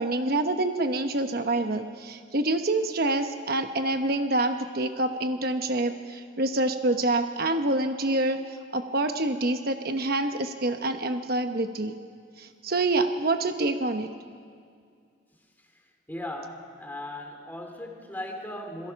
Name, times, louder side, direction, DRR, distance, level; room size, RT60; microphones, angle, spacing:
voice 1, 0.0-11.9 12.4-14.1, right 2 dB, 55° right, 6 dB, 1.1 m, -27 dB
voice 2, 16.1-18.9, left 1 dB, 10° left, 3 dB, 2.6 m, -37 dB
27.0 x 21.5 x 5.9 m, 2.2 s
head